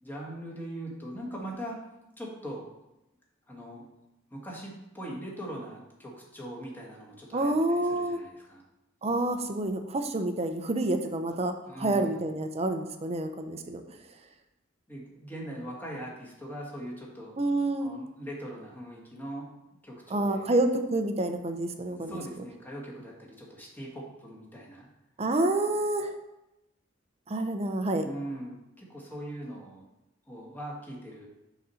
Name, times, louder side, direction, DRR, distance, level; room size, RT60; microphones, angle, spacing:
voice 1, 0.0-1.8 2.2-2.7 3.5-3.9 4.3-8.6 11.7-12.3 14.9-17.4 17.8-19.5 19.8-20.5 21.8-24.9 28.0-29.9 30.3-31.3, right 1 dB, 10° left, -3 dB, 1.6 m, -41 dB
voice 2, 7.3-8.2 9.0-11.5 11.8-13.8 17.4-17.9 20.1-22.2 25.2-26.1 27.3-28.0, right 2 dB, 30° right, 7 dB, 0.6 m, -28 dB
6.3 x 4.1 x 5.6 m, 0.92 s
head